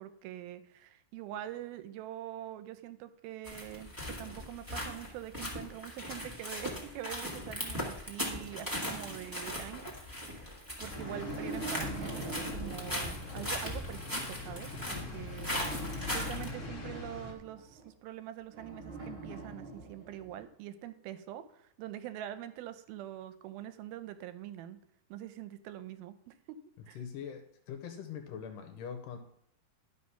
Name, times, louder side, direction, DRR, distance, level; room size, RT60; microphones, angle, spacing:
voice 1, 0.0-9.9 10.4-24.8 25.1-26.3 26.9-27.0, right 12 dB, 85° right, 11 dB, 2.5 m, -44 dB
sound 1, 3.4-16.5, left 1 dB, 30° right, 0.3 m, -39 dB
sound 2, 8.5-10.1 10.6-13.7 15.3-17.8 18.5-20.4, right 3 dB, 45° right, 3.1 m, -44 dB
sound 3, 10.9-17.3, left 4 dB, 40° left, 1.1 m, -43 dB
voice 2, 27.0-29.2, left 7 dB, 75° left, 5 dB, 2.1 m, -42 dB
11.0 x 5.2 x 5.6 m, 0.72 s
omnidirectional pair, 4.3 m